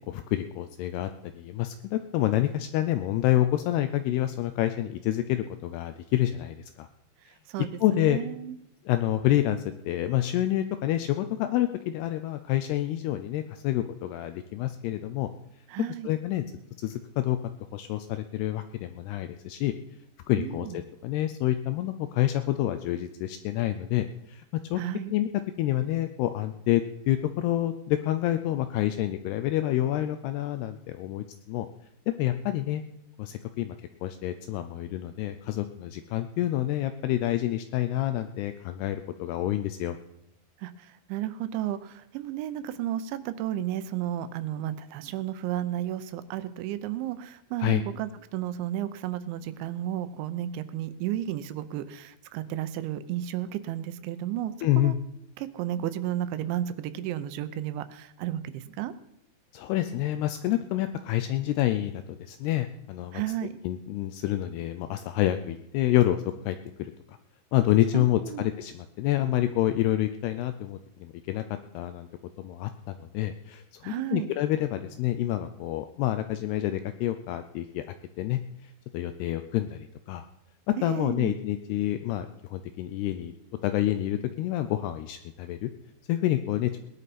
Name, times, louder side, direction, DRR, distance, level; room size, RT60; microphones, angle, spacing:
voice 1, 0.1-6.9 7.8-8.2 8.9-15.3 15.8-16.4 16.8-17.4 17.7-19.7 20.3-24.4 24.7-24.8 25.1-25.3 25.6-31.7 32.1-32.8 33.2-33.7 34.0-40.0 47.6-47.8 54.6-55.0 59.5-63.2 63.6-67.2 67.5-71.4 71.7-72.1 72.4-77.8 78.2-80.3 80.7-83.3 83.6-85.7 86.1-86.7, left 13 dB, 85° left, 9 dB, 2.3 m, -28 dB
voice 2, 7.5-8.6 15.7-16.1 20.3-20.8 24.8-25.1 40.6-54.9 55.4-58.9 63.1-63.6 67.9-68.5 73.8-74.3 80.8-81.3, right 12 dB, 85° right, 12 dB, 3.1 m, -33 dB
19.0 x 11.0 x 4.2 m, 0.83 s
omnidirectional pair, 5.2 m